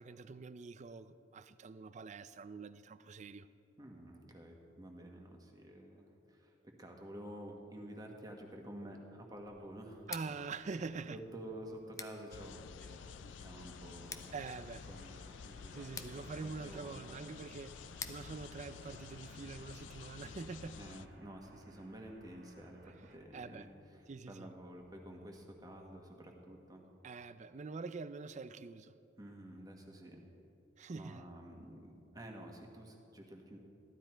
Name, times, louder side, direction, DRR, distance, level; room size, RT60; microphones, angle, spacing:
voice 1, 0.0-3.5 10.1-11.2 12.8-13.1 14.3-14.9 15.7-20.8 23.3-23.7 24.1-24.5 27.0-28.9 30.8-31.2, right 4 dB, 40° right, 0.4 m, -45 dB
voice 2, 3.8-10.1 11.1-14.4 14.9-17.2 20.8-26.9 29.2-30.3 30.9-33.6, right 1 dB, 20° right, 1.4 m, -50 dB
sound 1, 9.3-25.9, right 1 dB, 55° right, 1.8 m, -62 dB
Scissors, 10.0-19.8, left 5 dB, 15° left, 0.5 m, -53 dB
sound 2, 12.3-21.1, left 6 dB, 65° left, 0.4 m, -51 dB
15.0 x 12.0 x 4.5 m
head